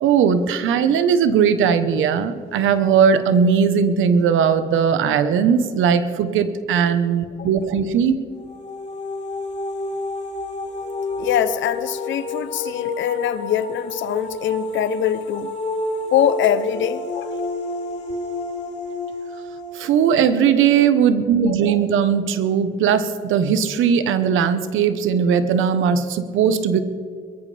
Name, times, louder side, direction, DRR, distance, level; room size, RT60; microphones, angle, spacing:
voice 1, 0.0-8.2 19.7-26.8, right 7 dB, 85° right, 1.1 m, -18 dB
sound 1, 8.4-21.2, left 2 dB, 35° left, 3.8 m, -30 dB
voice 2, 11.2-15.5 16.1-17.3, left 10 dB, 70° left, 0.8 m, -23 dB
22.5 x 14.0 x 3.4 m
cardioid pair, 90°, 20 cm